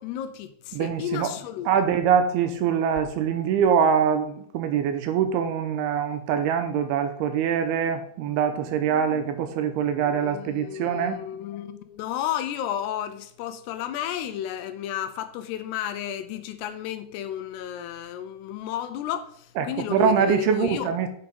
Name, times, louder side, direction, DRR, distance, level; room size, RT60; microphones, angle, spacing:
voice 1, 0.0-1.7 8.8-9.2 9.8-20.9, left 10 dB, 80° left, 2.7 m, -33 dB
voice 2, 0.7-1.3 1.7-11.2 19.6-21.1, right 7 dB, 80° right, 2.5 m, -24 dB
8.3 x 5.1 x 5.2 m
omnidirectional pair, 4.8 m